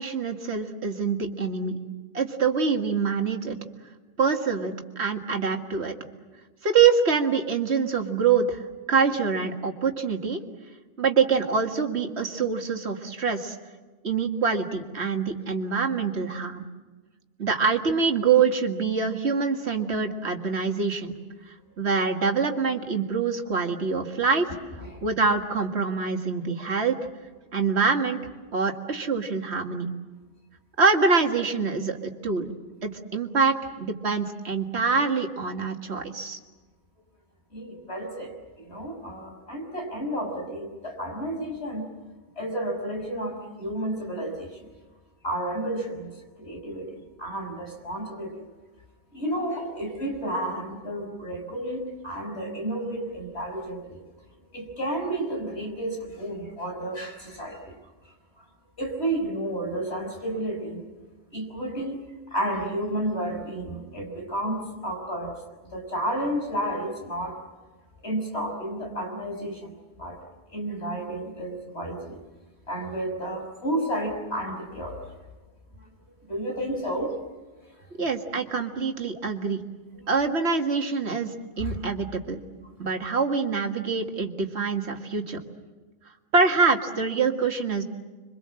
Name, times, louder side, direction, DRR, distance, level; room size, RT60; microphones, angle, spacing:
voice 1, 0.0-1.8 2.1-3.6 4.2-5.9 6.6-8.6 8.9-10.4 11.0-13.6 14.0-16.6 17.4-21.1 21.8-24.5 25.0-27.0 27.5-28.2 28.5-29.9 30.8-32.5 32.8-36.4 78.0-79.6 80.1-82.4 82.8-85.4 86.3-87.8, right 5 dB, 70° right, 4 dB, 2.1 m, -25 dB
voice 2, 37.5-38.3 38.6-41.8 42.4-44.7 45.2-48.5 49.1-54.0 54.5-57.8 58.4-58.5 58.8-60.8 61.3-62.0 62.3-65.4 65.7-67.4 68.0-69.7 70.0-70.2 70.5-72.2 72.7-75.0 75.8-75.9 76.2-77.1 81.6-81.7, right 1 dB, 70° left, 1 dB, 6.5 m, -31 dB
27.0 x 24.0 x 7.6 m, 1.3 s
omnidirectional pair, 1.2 m